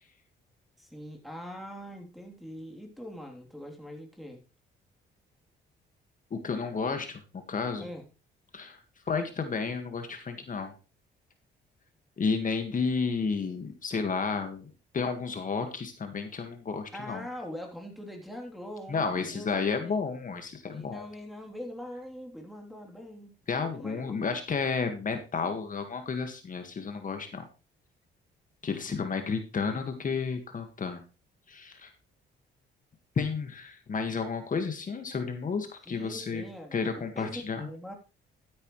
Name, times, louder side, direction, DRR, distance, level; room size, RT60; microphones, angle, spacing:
voice 1, 0.8-4.4 7.8-8.1 16.9-20.0 20.7-24.2 35.9-37.9, equal, ahead, 1 dB, 3.4 m, -43 dB
voice 2, 6.3-7.2 7.5-7.9 8.5-8.8 9.1-10.7 12.2-17.3 18.9-21.1 23.5-27.5 28.6-31.0 31.5-31.9 33.2-36.4 36.7-37.7, left 5 dB, 40° left, 6 dB, 1.9 m, -32 dB
13.0 x 9.8 x 3.2 m, 0.31 s
cardioid pair, 90°, 20 cm